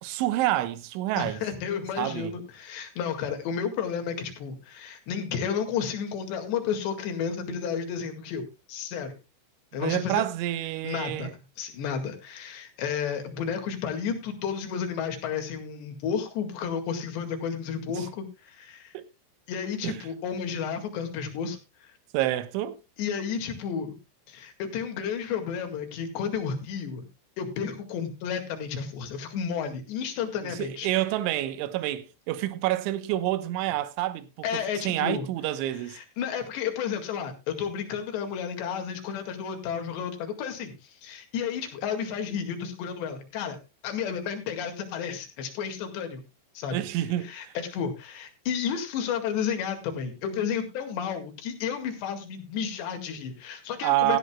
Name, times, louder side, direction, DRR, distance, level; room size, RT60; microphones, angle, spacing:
voice 1, 0.0-1.4 2.0-2.3 9.8-11.3 17.9-18.0 18.9-19.1 19.8-20.0 22.1-22.8 30.4-36.0 46.7-47.5 53.8-54.2, right 15 dB, 75° right, 3.3 m, -28 dB
voice 2, 1.2-9.2 9.7-10.2 10.8-11.3 11.6-18.9 19.5-21.9 23.0-23.9 24.3-27.0 27.4-30.9 34.4-35.3 35.9-43.6 43.8-46.2 46.6-46.8 47.2-54.2, left 7 dB, 65° left, 4.0 m, -32 dB
16.0 x 13.0 x 2.3 m
omnidirectional pair, 5.7 m